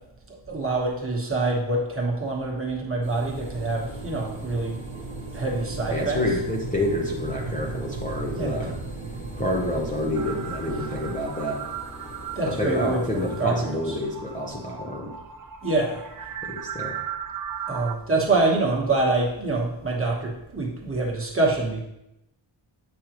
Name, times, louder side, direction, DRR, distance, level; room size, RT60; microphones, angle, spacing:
voice 1, 0.3-4.8 5.3-6.2 8.4-8.6 12.3-13.9 15.6-16.0 17.7-21.8, right 2 dB, 25° right, -2 dB, 1.3 m, -25 dB
sound 1, 3.0-13.4, left 1 dB, 40° left, 1.9 m, -43 dB
sound 2, 3.3-11.2, right 3 dB, 70° right, 0.8 m, -36 dB
voice 2, 5.9-8.7 9.4-11.6 12.4-15.1 16.4-17.1, left 1 dB, 15° left, -3 dB, 0.7 m, -28 dB
sound 3, 10.1-17.9, right 8 dB, 45° right, 0.4 m, -37 dB
8.1 x 5.2 x 3.0 m, 0.85 s
wide cardioid pair, 170°, 49 cm